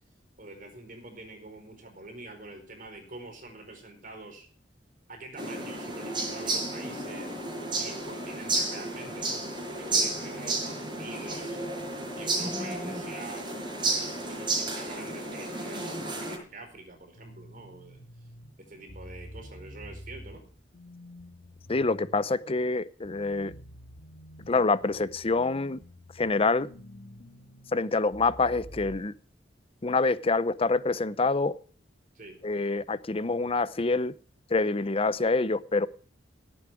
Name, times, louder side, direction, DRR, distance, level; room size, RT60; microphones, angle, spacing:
voice 1, 0.4-4.5 5.1-7.4 7.7-11.7 12.1-18.0 18.6-20.4 32.1-32.4, right 2 dB, 50° right, 4 dB, 4.8 m, -45 dB
sound 1, 5.4-16.4, right 2 dB, 25° right, 6.2 m, -32 dB
sound 2, 17.1-29.0, equal, 50° left, 2.1 m, -48 dB
voice 2, 21.7-23.5 24.5-25.8 26.2-26.7 27.7-29.1 29.8-31.5 32.4-34.1 34.5-35.9, left 3 dB, 30° left, 17 dB, 0.7 m, -26 dB
17.5 x 8.6 x 4.8 m, 0.42 s
head